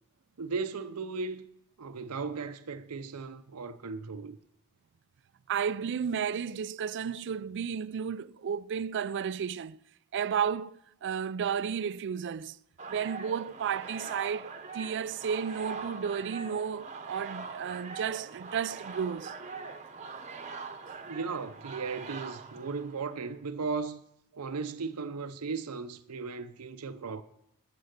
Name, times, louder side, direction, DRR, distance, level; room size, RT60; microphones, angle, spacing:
voice 1, 0.4-1.4 1.8-4.4 21.1-24.0 24.4-27.2, right 4 dB, 90° right, 0.7 m, -36 dB
voice 2, 5.5-9.8 10.1-12.6 12.9-19.3, right 7 dB, 55° right, 0.4 m, -33 dB
sound 1, 12.8-23.2, right 4 dB, 35° right, 1.0 m, -43 dB
14.0 x 6.9 x 6.6 m
head